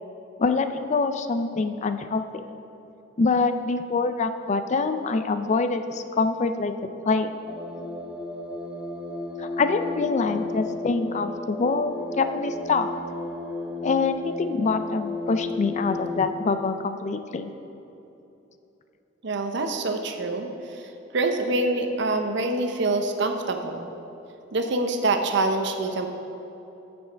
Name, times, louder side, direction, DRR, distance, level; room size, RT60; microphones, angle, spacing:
voice 1, 0.4-2.2 3.2-6.7 7.1-7.3 9.4-12.9 13.8-17.5, left 4 dB, 40° left, 9 dB, 0.4 m, -25 dB
sound 1, 7.5-16.2, left 2 dB, 5° right, 0.7 m, -33 dB
voice 2, 19.2-23.9 24.5-26.1, right 2 dB, 65° right, 5 dB, 0.7 m, -26 dB
12.0 x 7.0 x 3.4 m, 3.0 s
head